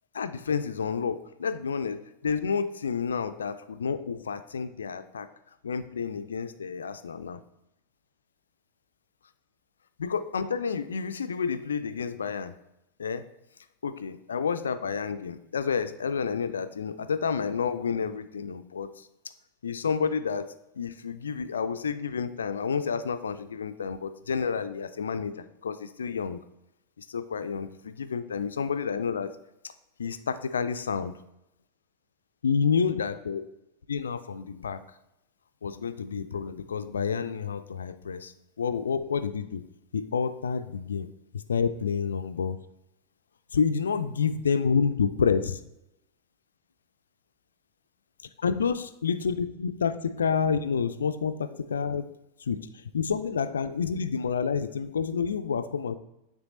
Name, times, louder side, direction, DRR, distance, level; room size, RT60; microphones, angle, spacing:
voice 1, 0.1-2.0 2.2-5.3 5.6-7.4 10.0-12.5 13.0-13.2 13.8-19.1 19.6-20.5 20.8-26.4 27.0-29.3 30.0-31.1 32.4-33.4 33.9-34.8 35.6-39.6 39.9-41.1 41.5-42.6 43.5-45.6 48.4-52.1 52.5-52.6 52.9-56.0, left 6 dB, 70° left, 11 dB, 0.4 m, -29 dB
8.8 x 3.4 x 4.0 m, 0.87 s
figure-of-eight pair, 90°, 0 cm